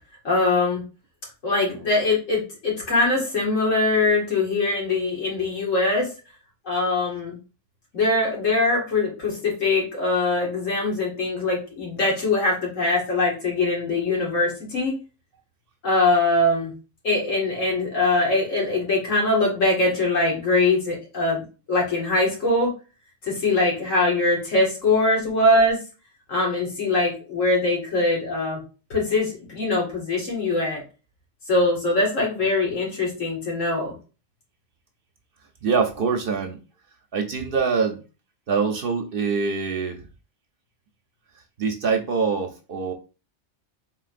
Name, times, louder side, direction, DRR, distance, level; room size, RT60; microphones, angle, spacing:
voice 1, 0.2-0.8 1.4-6.1 6.7-7.4 7.9-14.9 15.8-16.7 17.0-21.4 21.7-22.7 23.2-25.8 26.3-28.6 28.9-30.8 31.5-33.9, left 2 dB, 90° left, -2 dB, 2.2 m, -22 dB
voice 2, 35.6-36.6 37.1-38.0 38.5-40.0 41.6-42.9, right 5 dB, 55° right, 5 dB, 0.7 m, -24 dB
4.0 x 3.8 x 2.5 m, 0.33 s
omnidirectional pair, 1.3 m